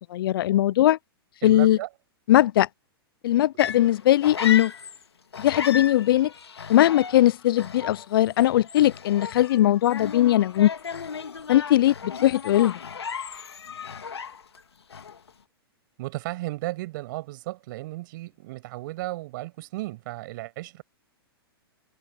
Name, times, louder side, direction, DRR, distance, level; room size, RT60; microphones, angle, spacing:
voice 1, 0.1-1.0 1.4-1.8 2.3-2.7 3.2-4.7 5.4-6.3 6.7-10.7 11.5-12.8, left 13 dB, 60° left, 0.4 m, -20 dB
voice 2, 1.4-1.9 16.0-20.8, right 19 dB, 50° right, 6.7 m, -34 dB
sound 1, 3.6-5.0 5.3-14.6 14.9-15.3, left 6 dB, 85° left, 2.3 m, -35 dB
hypercardioid pair, 115°, 13 cm